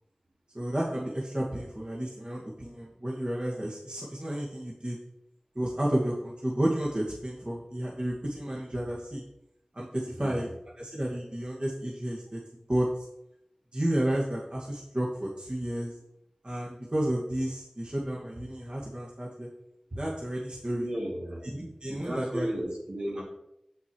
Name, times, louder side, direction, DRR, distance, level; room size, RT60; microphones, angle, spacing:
voice 1, 0.5-5.0 5.6-9.2 9.7-10.5 10.8-12.4 12.7-12.9 13.7-15.9 16.4-19.5 19.9-20.9 21.4-22.5, right 1 dB, 50° right, -4 dB, 2.2 m, -31 dB
voice 2, 20.7-21.5 21.9-23.2, equal, 75° right, -3 dB, 3.3 m, -34 dB
8.1 x 8.1 x 4.7 m, 0.80 s
wide cardioid pair, 40°, 2 cm